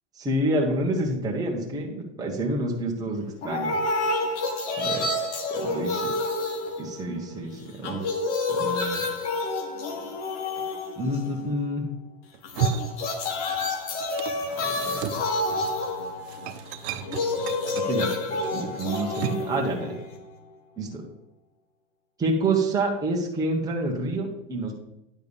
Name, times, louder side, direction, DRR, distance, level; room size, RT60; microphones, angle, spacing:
voice 1, 0.2-3.8 4.8-5.0 5.5-6.1 6.8-8.0 8.5-9.0 11.0-11.9 14.5-15.1 17.7-20.0 20.8-21.0 22.2-24.7, right 2 dB, 10° right, -2 dB, 1.2 m, -28 dB
sound 1, 3.4-7.4 7.7-11.5 12.4-20.4, left 2 dB, 75° left, 1.7 m, -29 dB
sound 2, 12.3-13.8 14.0-19.6, right 9 dB, 65° right, 0.8 m, -34 dB
9.6 x 3.5 x 7.0 m, 0.85 s
supercardioid pair, 135°, 36 cm